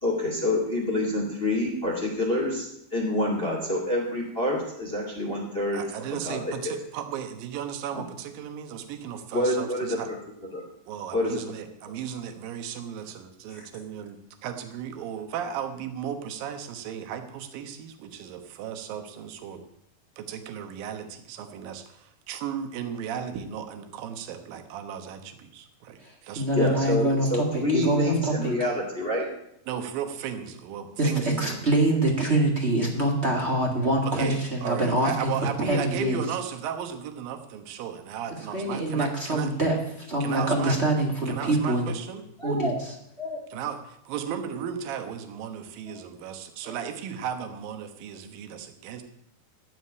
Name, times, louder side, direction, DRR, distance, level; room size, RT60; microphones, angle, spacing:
voice 1, 0.0-5.8 6.2-6.7 7.9-8.0 9.3-10.2 10.5-10.6 11.1-11.4 26.5-29.3 42.4-42.7 43.2-43.4 45.8-45.9 46.6-46.7, left 1 dB, 20° left, -1 dB, 2.0 m, -27 dB
voice 2, 5.7-10.1 10.9-19.6 20.2-26.9 29.7-31.6 34.0-39.5 40.2-40.8 41.3-42.2 43.5-49.0, right 8 dB, 70° right, 7 dB, 2.8 m, -35 dB
voice 3, 26.3-28.5 31.0-35.3 35.6-36.2 38.5-41.9 42.4-42.9, right 1 dB, 45° right, 0 dB, 0.8 m, -25 dB
15.0 x 5.2 x 9.7 m, 0.75 s
omnidirectional pair, 4.4 m